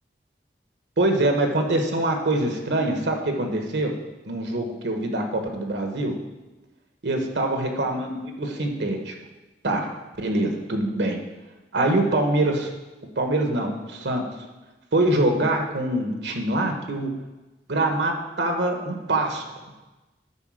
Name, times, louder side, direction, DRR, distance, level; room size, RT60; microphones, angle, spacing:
voice 1, 1.0-3.9 4.2-6.2 7.0-9.1 9.6-9.9 10.2-11.2 11.7-12.7 13.2-14.2 14.9-17.1 17.7-19.4, right 1 dB, 80° right, 4 dB, 1.2 m, -24 dB
9.8 x 4.1 x 6.4 m, 1.1 s
head